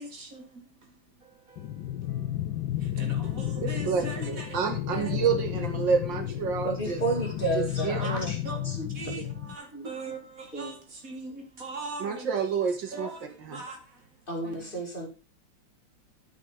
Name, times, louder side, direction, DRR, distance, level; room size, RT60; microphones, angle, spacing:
voice 1, 0.0-2.4 2.8-4.6 4.9-5.2 6.9-7.0 8.0-12.3 12.8-14.0 14.4-14.8, right 3 dB, 45° right, 2.1 m, -41 dB
sound 1, 1.6-9.6, left 12 dB, 75° left, 1.5 m, -32 dB
voice 2, 3.6-7.0 7.8-8.1 12.0-13.1 13.4-13.6, right 6 dB, 75° right, 2.3 m, -29 dB
voice 3, 6.6-8.4 8.6-9.3 9.7-9.9 10.5-10.8 14.3-15.1, right 2 dB, 25° left, 2.6 m, -32 dB
12.0 x 5.7 x 3.8 m
omnidirectional pair, 2.0 m